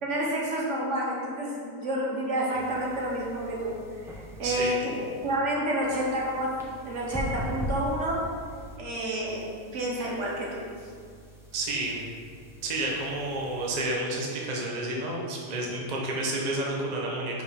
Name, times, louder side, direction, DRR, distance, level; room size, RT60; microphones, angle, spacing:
voice 1, 0.0-5.0 5.2-6.6 6.9-8.3 8.8-10.6, right 1 dB, 55° right, -3 dB, 1.2 m, -29 dB
sound 1, 2.5-5.3 5.8-8.8 9.3-13.8, equal, 5° right, 0.4 m, -41 dB
voice 2, 4.4-4.7 11.5-12.0 12.6-17.4, right 2 dB, 35° right, -2 dB, 0.8 m, -30 dB
5.0 x 5.0 x 5.0 m, 2.1 s
omnidirectional pair, 1.6 m